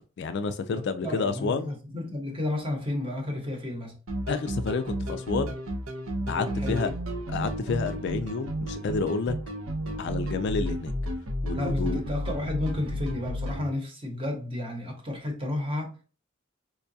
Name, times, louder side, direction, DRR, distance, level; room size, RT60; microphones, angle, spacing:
voice 1, 0.2-1.7 4.3-5.5 6.3-6.9 7.3-9.4 10.0-10.9 11.4-12.0, left 4 dB, 55° left, 0.3 m, -29 dB
voice 2, 1.0-4.0 6.4-6.9 11.5-16.0, left 1 dB, 25° right, 0.9 m, -32 dB
sound 1, 4.1-13.7, equal, 80° right, 0.6 m, -32 dB
4.6 x 2.2 x 2.6 m
head